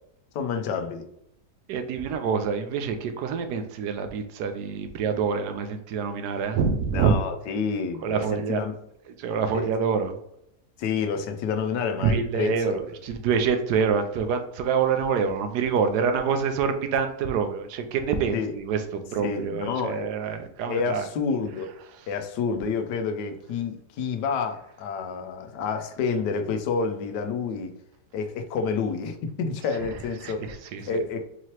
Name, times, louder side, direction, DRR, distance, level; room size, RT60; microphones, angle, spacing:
voice 1, 0.3-1.1 6.9-8.8 9.5-9.7 10.8-12.8 18.3-18.5 19.2-20.1 20.7-21.7 22.1-27.7 28.1-30.5 30.9-31.2, left 5 dB, 85° left, 6 dB, 1.2 m, -29 dB
voice 2, 1.7-7.1 8.0-8.6 9.2-10.2 12.0-21.1 29.8-29.9 30.2-31.0, right 6 dB, 75° right, 7 dB, 1.1 m, -26 dB
4.7 x 3.0 x 2.9 m, 0.76 s
omnidirectional pair, 1.8 m